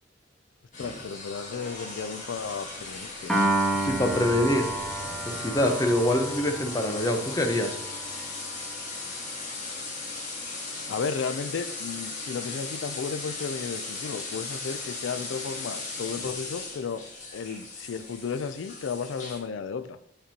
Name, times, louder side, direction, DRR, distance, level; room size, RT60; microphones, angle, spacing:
Shower effects, 0.7-19.4, left 3 dB, 40° left, 1.5 m, -37 dB
voice 1, 0.8-3.4 10.9-17.1 17.3-20.0, left 5 dB, 85° left, 12 dB, 0.4 m, -34 dB
Piano, 3.3-9.7, right 2 dB, ahead, 1.3 m, -31 dB
voice 2, 3.7-4.7 5.2-7.8, left 1 dB, 20° left, 4 dB, 0.8 m, -25 dB
Boom, 3.9-8.5, right 1 dB, 30° right, 1.4 m, -48 dB
8.9 x 5.3 x 2.9 m, 0.70 s
head